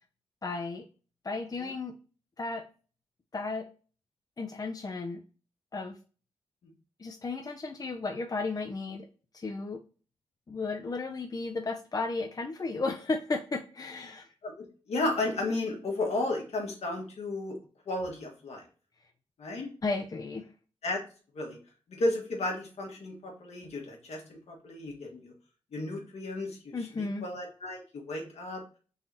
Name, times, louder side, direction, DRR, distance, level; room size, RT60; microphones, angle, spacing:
voice 1, 0.4-0.8 1.2-1.9 2.4-2.6 3.3-3.6 4.4-5.2 5.7-6.0 7.0-9.1 9.3-9.8 10.5-14.3 19.8-20.5 26.7-27.3, left 3 dB, 35° left, 5 dB, 0.6 m, -34 dB
voice 2, 14.4-17.6 17.9-18.6 19.4-19.7 20.8-21.0 21.3-21.6 21.9-25.3 25.7-28.6, left 2 dB, 75° left, 0 dB, 1.5 m, -33 dB
4.0 x 2.9 x 3.7 m, 0.37 s
cardioid pair, 50°, 11 cm